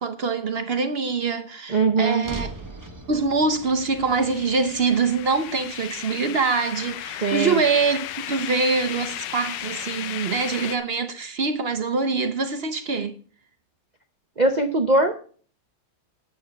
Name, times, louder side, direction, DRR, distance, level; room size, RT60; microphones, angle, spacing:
voice 1, 0.0-2.5 3.1-13.1, right 4 dB, 50° right, 0.7 m, -24 dB
voice 2, 1.7-2.3 7.2-7.6 14.4-15.1, right 3 dB, 80° right, 0.4 m, -20 dB
sound 1, 2.2-6.5, right 2 dB, 15° right, 0.9 m, -40 dB
sound 2, 3.7-10.8, left 12 dB, 70° left, 1.3 m, -35 dB
9.1 x 9.0 x 5.1 m
omnidirectional pair, 2.1 m